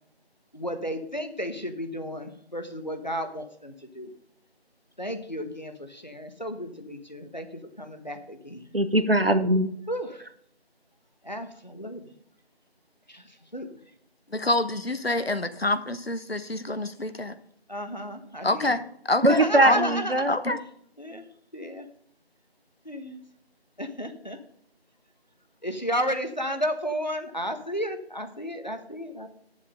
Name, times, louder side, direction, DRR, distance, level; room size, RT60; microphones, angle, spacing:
voice 1, 0.5-4.1 5.0-8.7 9.9-10.3 11.2-12.1 13.1-13.7 17.7-18.8 19.3-20.4 21.0-21.2 21.5-21.9 22.8-23.2 23.8-24.4 25.6-29.3, equal, 45° left, 1.2 m, -33 dB
voice 2, 8.7-9.7 19.2-20.3, right 1 dB, 65° right, 1.1 m, -21 dB
voice 3, 14.3-17.3 18.4-20.0 20.3-20.6, left 2 dB, 65° left, 1.0 m, -27 dB
9.9 x 7.3 x 5.3 m
figure-of-eight pair, 180°, 32 cm